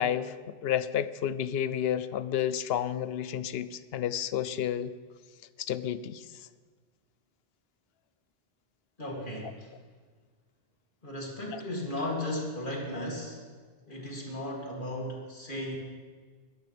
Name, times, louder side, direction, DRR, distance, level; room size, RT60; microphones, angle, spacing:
voice 1, 0.0-4.9 5.6-6.2 11.5-11.6, left 10 dB, 75° left, 15 dB, 0.8 m, -31 dB
voice 2, 9.0-9.7 11.0-13.4 13.9-15.8, left 1 dB, 50° left, -3 dB, 2.9 m, -35 dB
22.5 x 10.5 x 3.4 m, 1.5 s
omnidirectional pair, 1.1 m